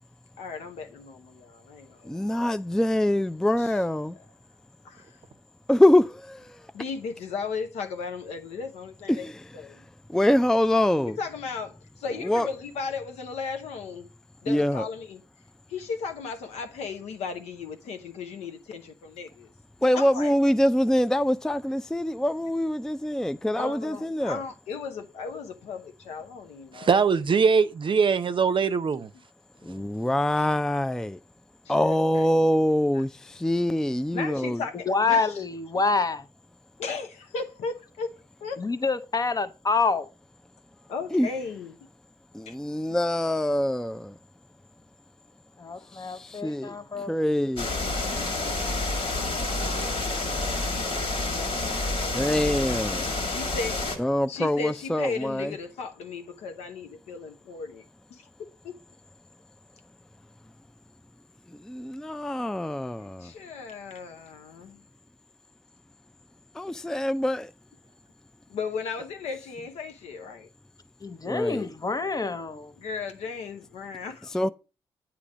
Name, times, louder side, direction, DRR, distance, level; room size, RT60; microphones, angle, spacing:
voice 1, 0.4-2.2 3.6-3.7 4.8-5.1 6.7-9.3 9.5-9.8 11.2-14.1 14.4-15.2 15.7-19.5 20.0-20.3 23.6-26.9 28.6-28.7 29.6-29.9 30.4-30.5 31.7-32.0 34.1-35.2 36.8-38.1 38.4-38.6 40.9-41.7 42.5-42.6 53.3-53.8 54.3-57.8 58.1-58.7 63.2-64.8 68.5-70.5 72.8-74.3, left 5 dB, 80° left, 0.8 m, -36 dB
voice 2, 2.0-4.2 5.7-6.7 9.1-9.4 10.1-11.2 12.2-12.5 14.5-14.9 19.8-24.4 29.6-31.2 31.7-34.6 41.1-41.3 42.3-44.2 45.9-46.8 47.1-47.7 52.1-53.1 54.0-55.5 61.6-63.3 66.5-67.5 71.3-71.7 74.3-74.5, left 1 dB, 5° left, 0.3 m, -24 dB
voice 3, 26.7-29.1, right 5 dB, 50° right, 0.6 m, -22 dB
voice 4, 34.8-36.3 38.6-40.1 45.6-47.1 71.0-72.7, left 4 dB, 35° left, 0.8 m, -27 dB
sound 1, 47.6-54.0, left 2 dB, 55° left, 1.9 m, -29 dB
8.4 x 3.0 x 6.1 m
supercardioid pair, 45°, 11 cm